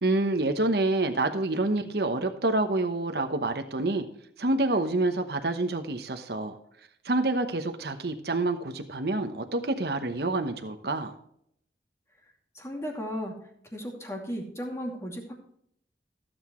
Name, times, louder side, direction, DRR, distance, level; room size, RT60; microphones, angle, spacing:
voice 1, 0.0-4.0 4.4-6.6 7.0-11.1, right 2 dB, 65° right, 6 dB, 1.0 m, -27 dB
voice 2, 12.5-15.3, equal, 15° left, 0 dB, 2.5 m, -35 dB
16.0 x 8.1 x 3.1 m, 0.69 s
head